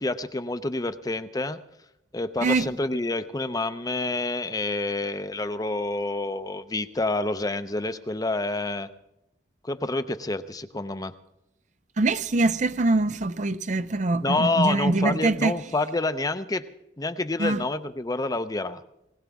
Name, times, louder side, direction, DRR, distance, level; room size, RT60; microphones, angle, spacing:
voice 1, 0.0-1.6 2.1-8.9 9.6-11.1 14.2-16.6 17.0-18.8, left 2 dB, 20° left, 0.6 m, -28 dB
voice 2, 12.0-15.5 17.4-17.6, right 2 dB, 40° right, 0.5 m, -23 dB
20.0 x 19.0 x 3.6 m
head